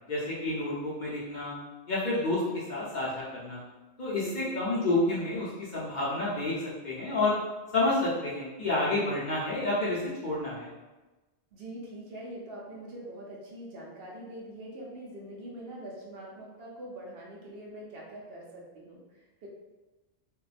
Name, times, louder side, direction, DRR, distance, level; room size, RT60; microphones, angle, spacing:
voice 1, 0.0-1.5 1.9-3.6 4.0-6.6 6.8-7.4 7.7-10.7, left 2 dB, 50° left, -7 dB, 0.6 m, -29 dB
voice 2, 4.0-4.7 11.5-19.5, right 1 dB, 65° right, -3 dB, 0.7 m, -43 dB
2.6 x 2.1 x 2.4 m, 1.2 s
omnidirectional pair, 1.2 m